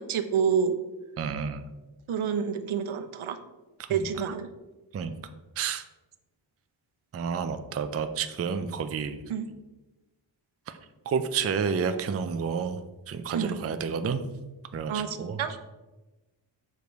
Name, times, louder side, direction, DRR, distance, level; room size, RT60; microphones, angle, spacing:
voice 1, 0.1-0.7 2.1-3.4 3.9-4.5 9.3-9.5 13.3-13.6 14.9-15.6, right 7 dB, 80° right, 8 dB, 0.8 m, -28 dB
voice 2, 1.2-1.7 3.8-4.3 4.9-5.1 5.6-5.9 7.1-9.2 11.1-12.8 13.1-14.2 14.7-15.4, right 6 dB, 35° right, 9 dB, 0.4 m, -30 dB
6.7 x 5.1 x 4.5 m, 1.1 s
wide cardioid pair, 165°, 48 cm